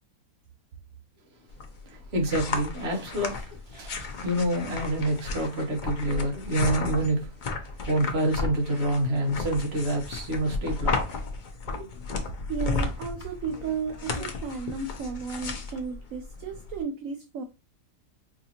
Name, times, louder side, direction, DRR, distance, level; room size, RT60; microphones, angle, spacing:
sound 1, 1.5-16.8, left 3 dB, 85° left, 0.4 m, -33 dB
voice 1, 1.9-7.3 7.8-11.2 11.7-11.9, right 1 dB, 45° right, 1.2 m, -27 dB
voice 2, 12.1-17.4, right 5 dB, 65° right, 0.9 m, -34 dB
4.9 x 2.7 x 2.8 m
omnidirectional pair, 1.7 m